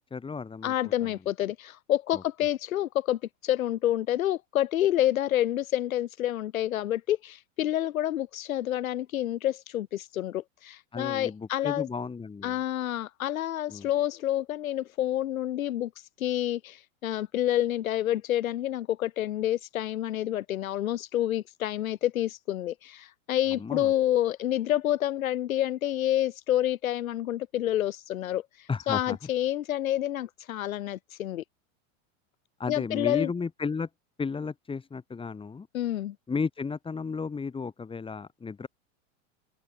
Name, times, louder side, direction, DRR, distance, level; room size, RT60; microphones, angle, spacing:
voice 1, 0.0-0.7 1.0-1.1 2.1-2.2 10.9-12.6 13.7-13.9 23.5-23.9 28.7-29.2 32.6-33.9 34.2-35.7 36.3-38.7, left 5 dB, 15° left, 4.8 m, -33 dB
voice 2, 0.6-11.9 12.4-31.4 32.7-33.3 35.7-36.1, left 12 dB, 90° left, 3.2 m, -28 dB
open air
supercardioid pair, 140°, 40 cm